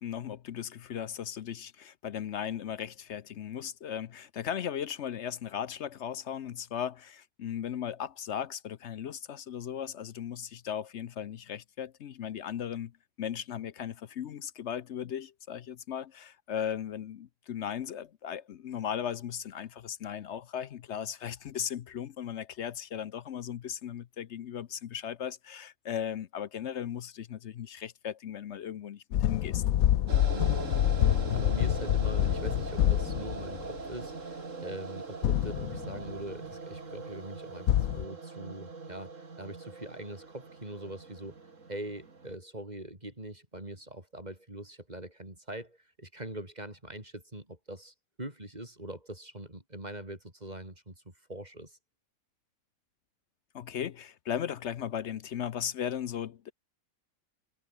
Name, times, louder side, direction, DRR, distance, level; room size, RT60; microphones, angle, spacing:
voice 1, 0.0-12.9 13.2-29.6 53.5-56.5, left 9 dB, 60° left, 0.9 m, -37 dB
sound 1, 29.1-33.8 35.2-36.1 37.7-38.0, left 12 dB, 75° left, 1.2 m, -27 dB
sound 2, 30.1-42.4, right 4 dB, 60° right, 2.9 m, -41 dB
voice 2, 31.0-51.8, right 1 dB, 30° right, 6.0 m, -43 dB
omnidirectional pair, 1.5 m